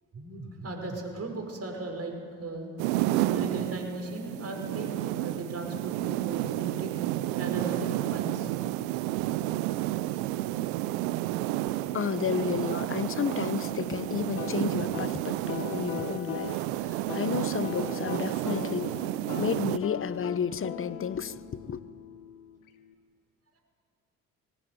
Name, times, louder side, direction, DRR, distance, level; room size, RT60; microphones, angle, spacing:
voice 1, 0.1-2.1 2.4-2.7 3.3-6.9 7.4-8.5, right 2 dB, 35° right, 5.9 m, -37 dB
sound 1, 2.8-19.8, right 15 dB, 70° right, 0.8 m, -31 dB
voice 2, 11.7-19.1 19.4-21.8, left 7 dB, 30° left, 1.0 m, -32 dB
sound 2, 14.4-22.9, left 8 dB, 80° left, 1.2 m, -40 dB
21.5 x 18.0 x 9.4 m
figure-of-eight pair, 50°, 42 cm